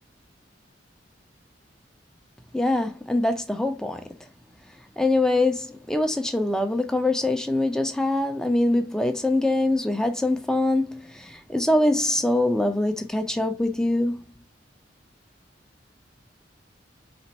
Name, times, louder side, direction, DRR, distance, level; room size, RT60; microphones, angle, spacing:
voice 1, 2.5-4.0 5.0-14.2, left 2 dB, 5° left, 0.6 m, -23 dB
4.2 x 2.5 x 4.1 m
head